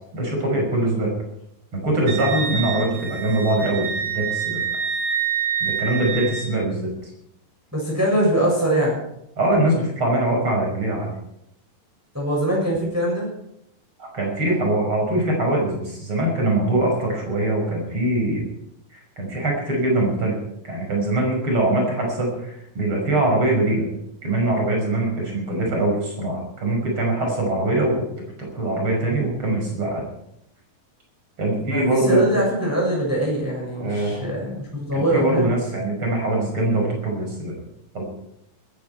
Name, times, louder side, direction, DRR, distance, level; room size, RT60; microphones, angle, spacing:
voice 1, 0.1-1.1 1.7-4.6 5.6-7.1 9.4-11.1 14.0-18.4 18.9-20.4 20.6-23.8 24.2-28.1 28.4-30.0 31.4-32.2 33.8-34.2 34.9-37.6 37.9-38.0, right 1 dB, 35° right, 0 dB, 6.7 m, -22 dB
Wind instrument woodwind instrument, 2.1-6.5, right 7 dB, 80° right, 3.9 m, -27 dB
voice 2, 7.7-9.0 12.1-13.3 31.7-35.5, right 1 dB, 5° right, -2 dB, 6.4 m, -22 dB
21.0 x 14.0 x 4.7 m, 0.79 s
omnidirectional pair, 4.0 m